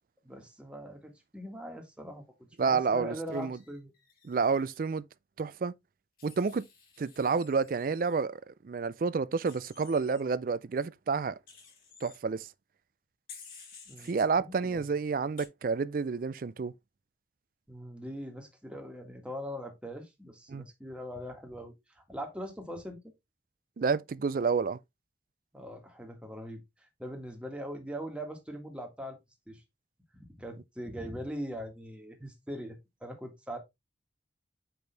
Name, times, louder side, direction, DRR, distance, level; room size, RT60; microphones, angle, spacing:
voice 1, 0.2-3.9 13.9-14.8 17.7-23.0 25.5-26.6 27.0-29.2 29.5-29.6 30.1-33.6, equal, 5° right, 1.6 m, -41 dB
voice 2, 2.6-3.6 4.2-5.0 5.4-5.7 6.2-6.7 7.0-11.4 12.0-12.5 14.0-16.7 20.5-20.7 23.8-24.8, right 5 dB, 50° right, 0.4 m, -29 dB
Wild animals, 3.3-4.8 6.2-8.2 9.5-10.2 11.5-12.2 13.3-14.2 15.4-15.5, left 5 dB, 50° left, 2.8 m, -54 dB
6.0 x 5.2 x 3.3 m
head